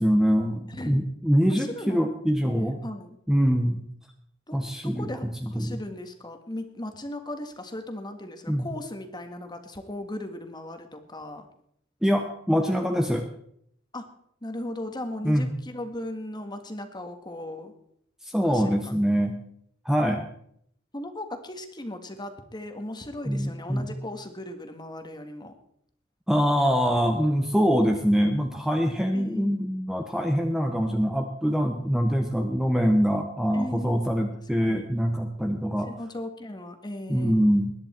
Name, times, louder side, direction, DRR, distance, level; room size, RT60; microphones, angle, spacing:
voice 1, 0.0-2.8 3.3-3.8 4.5-5.1 5.4-5.8 8.5-8.7 12.0-13.3 15.2-15.5 18.2-19.3 19.8-20.2 23.2-23.9 26.3-35.9 37.1-37.7, equal, 5° right, 4 dB, 1.0 m, -24 dB
voice 2, 0.7-1.1 1.5-2.0 2.5-3.1 4.5-11.5 13.9-14.1 14.4-17.7 18.4-18.9 20.1-20.2 20.9-25.6 29.1-29.7 33.5-34.1 34.6-34.9 35.8-37.5, left 1 dB, 25° left, 7 dB, 1.7 m, -37 dB
20.5 x 10.5 x 4.4 m, 0.69 s
head